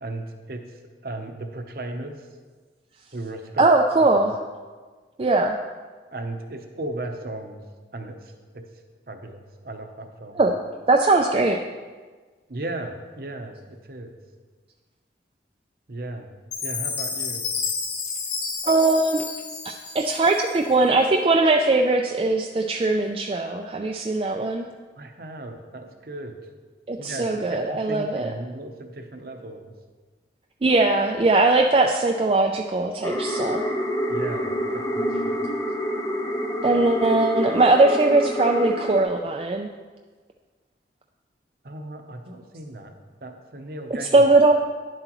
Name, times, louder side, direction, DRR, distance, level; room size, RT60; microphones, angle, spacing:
voice 1, 0.0-2.2 3.1-3.6 4.0-4.1 6.1-7.6 7.9-8.6 9.1-10.4 12.5-14.1 15.9-16.3 16.6-17.5 25.0-26.4 27.0-29.7 34.1-35.3 41.6-42.9 43.2-44.3, right 2 dB, 55° right, 6 dB, 0.7 m, -36 dB
voice 2, 3.6-4.4 5.2-5.6 10.4-10.5 10.9-11.6 18.6-19.2 19.6-24.7 26.9-28.3 30.6-33.6 36.6-39.7 44.1-44.5, right 2 dB, 30° right, 2 dB, 0.3 m, -20 dB
Chime, 16.5-20.7, left 5 dB, 75° left, 1.3 m, -31 dB
sound 1, 33.0-39.0, equal, 15° left, 0.6 m, -27 dB
10.0 x 7.6 x 3.0 m, 1.4 s
head